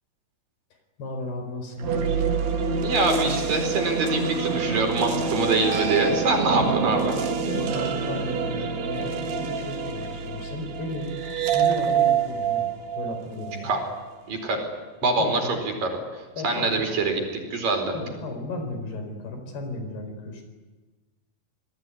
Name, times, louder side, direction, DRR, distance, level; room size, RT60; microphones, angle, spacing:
voice 1, 1.0-2.1 7.4-11.2 11.5-12.7 13.0-13.7 15.0-15.6 16.4-16.8 17.9-20.4, left 2 dB, 80° left, 6 dB, 6.6 m, -34 dB
sound 1, 1.8-14.0, right 6 dB, 80° right, 4.0 m, -26 dB
voice 2, 2.8-7.1 13.6-13.8 14.3-14.7 15.0-15.4 15.8-15.9 16.4-17.2 17.5-17.9, right 3 dB, 60° right, 3 dB, 6.1 m, -24 dB
28.0 x 19.5 x 9.7 m, 1.3 s
omnidirectional pair, 4.6 m